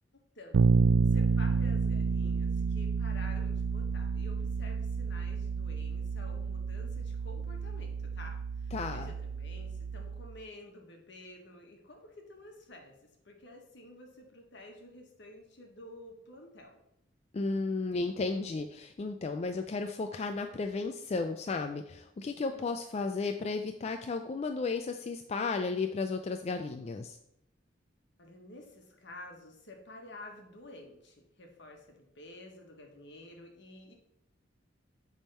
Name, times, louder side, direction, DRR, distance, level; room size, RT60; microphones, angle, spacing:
voice 1, 0.3-0.7 1.0-16.8 22.5-22.6 28.2-33.9, left 1 dB, 65° left, 2 dB, 1.4 m, -51 dB
Bass guitar, 0.5-10.4, right 5 dB, 80° right, 0.3 m, -30 dB
voice 2, 8.7-9.1 17.3-27.2, left 3 dB, 35° left, 6 dB, 0.3 m, -34 dB
7.3 x 3.6 x 5.5 m, 0.79 s
head